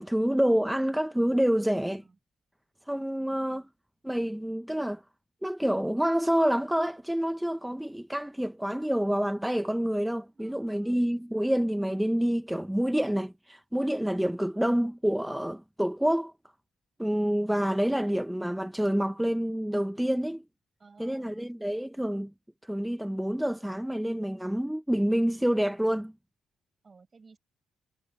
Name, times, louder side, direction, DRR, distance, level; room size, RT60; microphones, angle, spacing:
voice 1, 0.0-2.0 2.9-3.7 4.0-5.0 5.4-16.3 17.0-20.4 21.0-22.3 22.6-26.1, equal, 5° right, 0.8 m, -27 dB
voice 2, 1.5-2.2 3.2-3.5 10.3-11.0 14.5-14.8 20.8-21.5 26.8-27.4, right 4 dB, 30° right, 5.9 m, -57 dB
cardioid pair, 90°, 0 cm